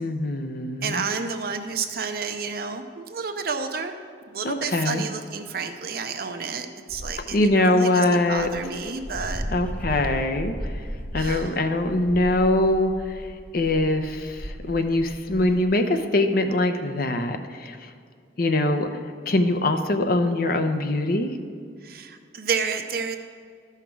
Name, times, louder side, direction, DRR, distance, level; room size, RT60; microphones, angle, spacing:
voice 1, 0.0-1.0 4.4-5.0 7.3-8.5 9.5-10.5 11.1-13.2 13.5-17.8 18.4-18.9 19.3-21.3, left 2 dB, 55° left, 7 dB, 0.7 m, -23 dB
voice 2, 0.8-3.9 4.3-9.4 11.2-11.6 21.8-23.2, right 5 dB, 60° right, 7 dB, 0.7 m, -30 dB
Dog, 6.9-7.5 8.1-8.2 8.3-15.7, equal, 10° left, 0.7 m, -35 dB
13.5 x 5.8 x 4.6 m, 2.1 s
head